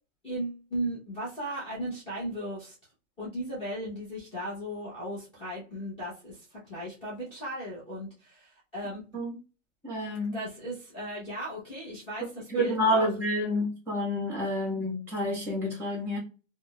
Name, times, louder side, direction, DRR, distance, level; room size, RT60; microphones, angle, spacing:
voice 1, 0.2-2.7 3.2-9.0 10.3-13.1, right 1 dB, 15° left, -7 dB, 1.0 m, -36 dB
voice 2, 9.8-10.4 12.5-16.2, equal, 5° right, -2 dB, 1.4 m, -28 dB
3.7 x 2.2 x 2.3 m, 0.34 s
hypercardioid pair, 155°, 39 cm